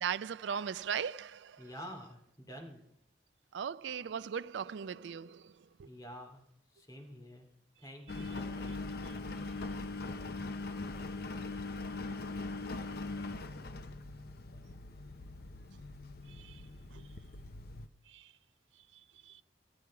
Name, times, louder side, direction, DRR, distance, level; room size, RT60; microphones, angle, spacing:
voice 1, 0.0-1.7 3.5-5.9 16.3-16.6 16.9-17.0 18.1-18.3 19.3-19.4, right 7 dB, 90° right, 0.4 m, -38 dB
voice 2, 1.6-2.8 5.8-6.4 6.7-7.5 7.8-8.8, equal, 20° left, 2.5 m, -48 dB
Engine, 8.1-17.9, left 3 dB, 60° left, 0.7 m, -41 dB
13.5 x 11.0 x 4.7 m
head